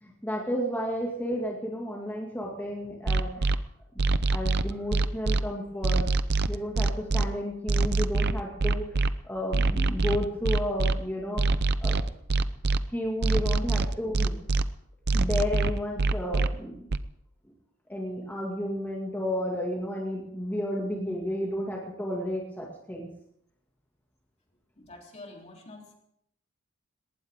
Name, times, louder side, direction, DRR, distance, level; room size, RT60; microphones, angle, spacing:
voice 1, 0.0-3.6 4.3-6.0 6.5-9.0 9.2-11.4 11.8-12.0 12.9-14.3 15.1-16.8 17.9-23.1, equal, 10° left, -3 dB, 2.2 m, -32 dB
sound 1, 3.1-3.6 4.0-5.4 5.8-7.2 7.7-9.1 9.5-10.9 11.4-12.8 13.2-14.6 15.1-16.5 16.9-17.0, right 3 dB, 50° right, 0.6 m, -24 dB
voice 2, 24.8-25.9, left 2 dB, 30° left, 1 dB, 3.4 m, -47 dB
20.0 x 18.5 x 3.7 m, 0.74 s
head